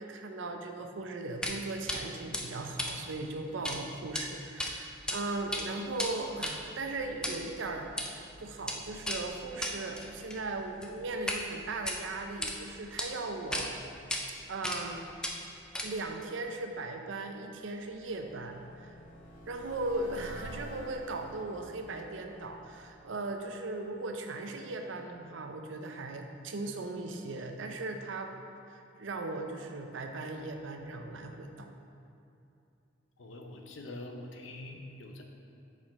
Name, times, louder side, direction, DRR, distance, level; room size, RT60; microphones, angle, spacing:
voice 1, 0.0-13.8 14.5-15.0 15.8-19.0 19.5-28.3 28.7-31.7, right 2 dB, 75° right, 4 dB, 0.6 m, -38 dB
sound 1, 1.4-1.6 1.9-2.0 2.3-3.8 4.0-4.2 4.6-5.2 5.4-11.4 11.7-12.5 13.0-13.1 13.5-13.7 14.1-14.2 14.6-14.9 15.2-16.1, left 1 dB, 5° left, 0.4 m, -36 dB
sound 2, 17.1-24.0, right 1 dB, 45° left, 0.9 m, -50 dB
voice 2, 33.2-35.2, left 2 dB, 75° left, 3 dB, 0.7 m, -44 dB
5.7 x 4.9 x 4.1 m, 2.7 s
head